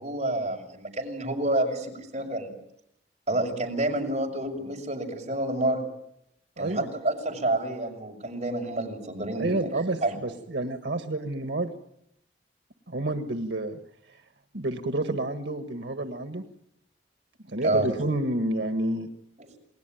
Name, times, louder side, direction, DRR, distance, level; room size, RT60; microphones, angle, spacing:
voice 1, 0.0-2.5 3.3-5.8 6.6-10.2 17.6-17.9 19.4-19.5, right 1 dB, 40° right, 1 dB, 6.4 m, -29 dB
voice 2, 6.6-6.9 9.3-11.7 12.9-13.8 14.1-14.2 14.5-16.4 17.4-19.1, right 2 dB, 80° right, 8 dB, 1.6 m, -29 dB
29.0 x 20.0 x 9.3 m, 0.77 s
head